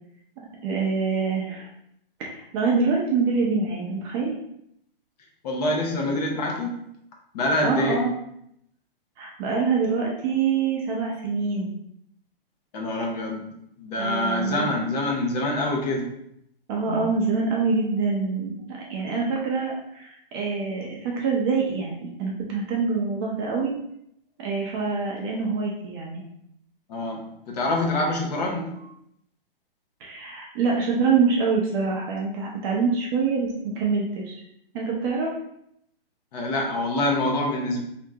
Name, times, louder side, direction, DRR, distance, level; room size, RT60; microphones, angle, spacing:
voice 1, 0.4-1.7 2.2-4.3 6.1-6.3 7.6-8.1 9.2-11.7 14.0-14.7 16.7-23.7 24.4-26.2 30.0-34.4 34.7-35.3, right 4 dB, 25° right, -2 dB, 0.5 m, -25 dB
voice 2, 5.4-6.8 7.3-8.0 12.7-13.4 13.9-16.1 16.9-17.0 26.9-27.2 27.5-28.7 36.3-37.8, left 1 dB, 45° left, 0 dB, 0.9 m, -25 dB
2.9 x 2.6 x 3.4 m, 0.73 s
hypercardioid pair, 140°, 29 cm